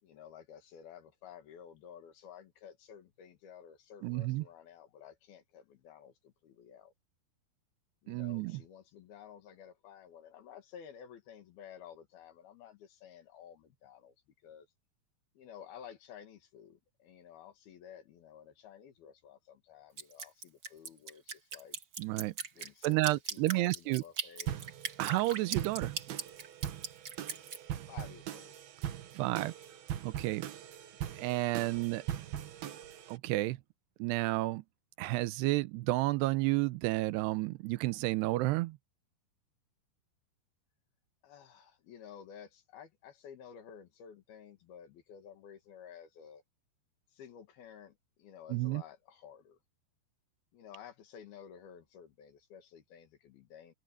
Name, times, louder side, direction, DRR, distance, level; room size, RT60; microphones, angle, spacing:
voice 1, 0.0-6.9 8.0-14.2 14.4-14.7 15.4-21.8 22.6-24.6 27.9-28.6 41.2-46.4 47.1-49.6 50.5-53.7, left 8 dB, 70° left, 3.8 m, -53 dB
voice 2, 4.0-4.4 8.1-8.6 22.0-22.3 22.8-24.0 25.0-25.9 29.1-29.5 30.0-30.5 31.2-32.0 33.1-33.6 34.0-34.6 35.0-38.8 48.5-48.8, right 19 dB, 90° right, 2.9 m, -31 dB
Drip, 20.0-27.6, right 6 dB, 45° right, 1.5 m, -39 dB
sound 1, 24.5-33.2, right 11 dB, 70° right, 3.3 m, -41 dB
omnidirectional pair, 4.6 m